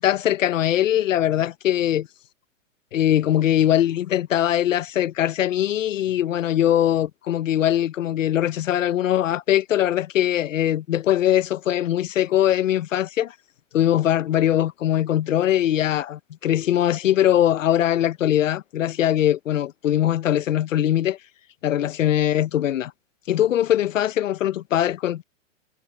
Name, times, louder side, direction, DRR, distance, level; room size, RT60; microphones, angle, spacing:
voice 1, 0.0-2.1 2.9-13.3 13.7-21.2 21.6-22.9 23.3-25.2, left 11 dB, 75° left, 1.0 m, -21 dB
hypercardioid pair, 170°, 38 cm